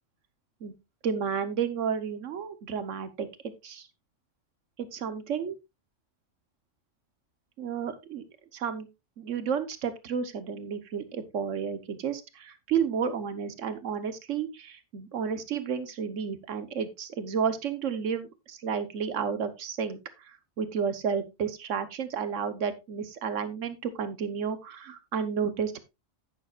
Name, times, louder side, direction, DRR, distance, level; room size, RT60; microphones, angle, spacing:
voice 1, 1.0-3.3 3.6-3.9 4.8-5.6 7.6-8.2 8.5-8.9 9.2-20.0 20.6-25.8, right 7 dB, 75° right, 11 dB, 1.4 m, -31 dB
11.0 x 9.2 x 2.4 m, 0.23 s
omnidirectional pair, 1.3 m